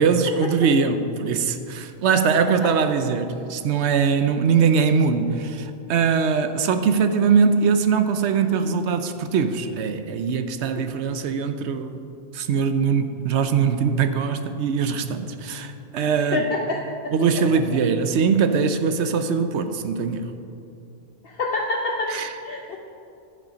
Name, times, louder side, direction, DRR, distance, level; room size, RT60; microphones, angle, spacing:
voice 1, 0.0-12.1 12.3-16.5 17.1-20.3 22.1-22.3, right 6 dB, 85° right, 1.0 m, -22 dB
voice 2, 16.3-16.8 21.2-22.8, left 2 dB, 60° left, 0.9 m, -26 dB
11.0 x 7.7 x 5.0 m
omnidirectional pair, 1.1 m